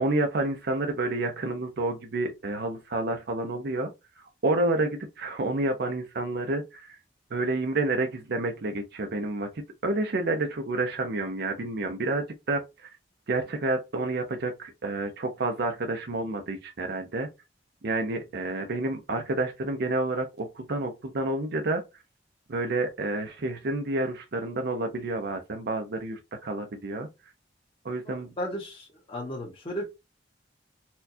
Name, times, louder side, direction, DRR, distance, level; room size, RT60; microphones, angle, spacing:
voice 1, 0.0-7.0 7.3-13.0 13.3-17.3 17.8-22.0 22.5-27.1 27.8-28.3, right 2 dB, 60° right, 0.6 m, -29 dB
voice 2, 28.0-29.8, equal, 30° left, 1.0 m, -35 dB
4.3 x 2.3 x 2.6 m
head